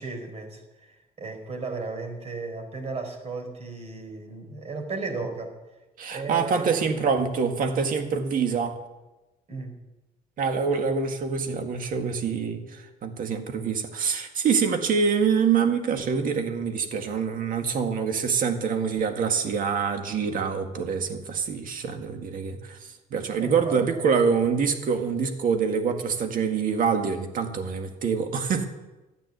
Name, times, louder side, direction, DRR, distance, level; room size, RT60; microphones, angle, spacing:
voice 1, 0.0-5.5 6.1-6.7 9.5-9.8 23.4-24.0, right 3 dB, 40° right, 4 dB, 4.1 m, -35 dB
voice 2, 6.0-8.8 10.4-28.7, right 6 dB, 55° right, 6 dB, 1.9 m, -25 dB
14.5 x 9.0 x 8.0 m, 1.1 s
cardioid pair, 110°, 17 cm